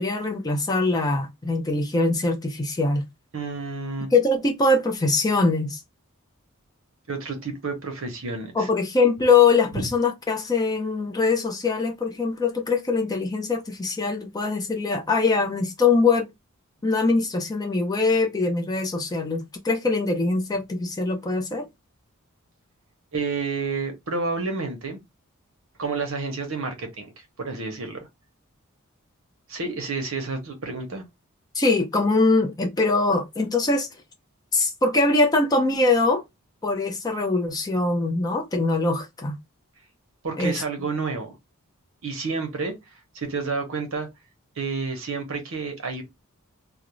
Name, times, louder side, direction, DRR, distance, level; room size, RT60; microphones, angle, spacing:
voice 1, 0.0-3.0 4.1-5.8 8.5-16.3 16.8-21.7 31.5-33.9 34.5-36.2 36.6-39.3 40.4-40.6, left 3 dB, 15° left, 0.4 m, -22 dB
voice 2, 3.3-4.1 7.1-8.7 23.1-25.0 25.8-27.1 27.4-28.1 29.5-31.0 40.2-41.3 42.0-42.7 43.1-44.1 44.6-46.0, right 4 dB, 65° right, 0.8 m, -30 dB
2.4 x 2.0 x 2.9 m
head